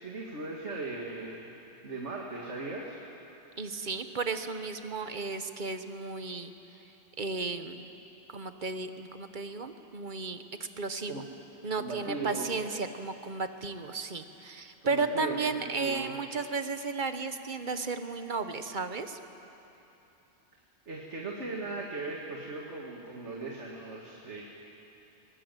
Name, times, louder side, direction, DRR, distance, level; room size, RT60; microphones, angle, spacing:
voice 1, 0.0-1.5 1.8-3.0 11.1-11.2 11.8-12.5 14.8-16.2 20.9-24.4, right 3 dB, 85° right, -2 dB, 2.3 m, -38 dB
voice 2, 3.6-6.5 7.2-7.9 8.3-10.4 10.8-11.2 11.6-19.2, right 4 dB, 45° right, 8 dB, 1.2 m, -34 dB
22.0 x 19.5 x 9.2 m, 3.0 s
omnidirectional pair, 1.2 m